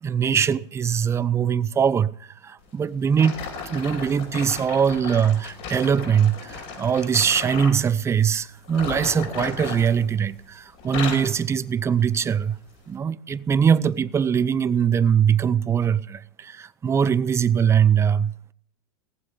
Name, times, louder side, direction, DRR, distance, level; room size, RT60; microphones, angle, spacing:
voice 1, 0.0-12.6 12.9-18.3, right 7 dB, 20° right, 0.6 m, -22 dB
sound 1, 3.2-7.8 8.6-10.4 10.7-11.4 12.0-12.2 12.8-12.9, left 5 dB, 55° left, 4.6 m, -35 dB
18.0 x 7.5 x 8.7 m
hypercardioid pair, 110°, 13 cm